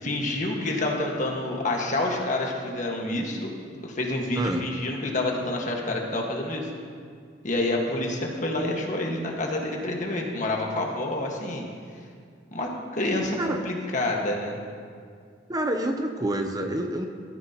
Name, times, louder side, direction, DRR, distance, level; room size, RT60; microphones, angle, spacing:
voice 1, 0.0-3.5 3.8-6.7 7.4-11.6 12.5-14.6, left 2 dB, 40° left, 0 dB, 1.5 m, -28 dB
voice 2, 15.5-17.1, right 1 dB, 20° right, 4 dB, 0.6 m, -27 dB
15.5 x 13.5 x 2.9 m, 2.1 s
head